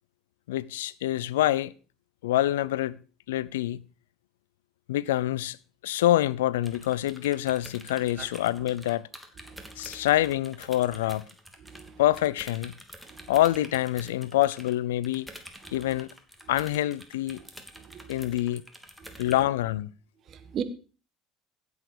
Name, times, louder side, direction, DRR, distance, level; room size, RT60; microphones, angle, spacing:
voice 1, 0.5-1.7 2.2-3.0 3.3-3.8 4.9-5.6 5.8-9.1 9.8-11.2 12.0-12.7 13.3-15.3 15.7-16.1 16.5-17.4 18.1-18.6 19.2-19.9, left 14 dB, 85° left, 0.5 m, -26 dB
sound 1, 6.6-11.9 12.1-19.4, equal, 5° right, 3.1 m, -47 dB
voice 2, 9.5-10.0 11.7-12.0 13.1-13.3 17.8-18.2 19.0-19.1 20.3-20.6, right 8 dB, 50° right, 2.0 m, -38 dB
16.5 x 8.0 x 5.0 m
hypercardioid pair, 70°, 0 cm